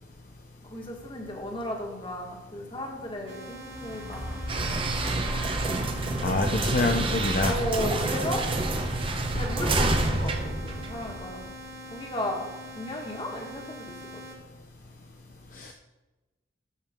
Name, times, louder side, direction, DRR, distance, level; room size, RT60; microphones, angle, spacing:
voice 1, 0.6-4.4 7.4-8.5 8.8-8.9 9.3-11.6 11.9-12.5 12.7-14.2, left 1 dB, 30° left, 0 dB, 1.7 m, -35 dB
sound 1, 3.3-11.4 11.9-12.0, equal, 5° right, 1.5 m, -38 dB
sound 2, 3.3-14.4, equal, 85° right, 1.7 m, -44 dB
sound 3, 4.5-11.4, right 2 dB, 30° right, 0.8 m, -28 dB
voice 2, 6.2-7.6 15.5-15.7, left 2 dB, 45° left, 3 dB, 0.6 m, -26 dB
13.0 x 6.3 x 3.7 m, 1.1 s
head